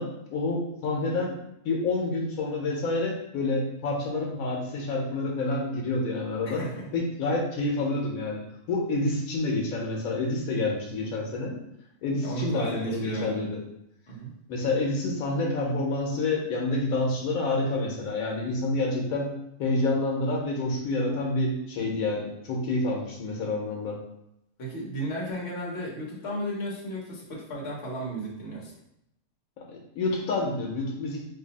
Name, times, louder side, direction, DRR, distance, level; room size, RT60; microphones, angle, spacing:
voice 1, 0.0-1.4 1.6-6.6 6.9-8.4 8.7-11.6 12.0-13.6 14.5-19.3 19.6-24.0 29.7-31.2, left 2 dB, 90° left, -1 dB, 1.2 m, -28 dB
voice 2, 6.4-6.9 12.2-13.4 14.1-14.3 24.6-28.7, right 1 dB, 55° left, -3 dB, 1.1 m, -34 dB
2.8 x 2.6 x 3.9 m, 0.79 s
omnidirectional pair, 1.4 m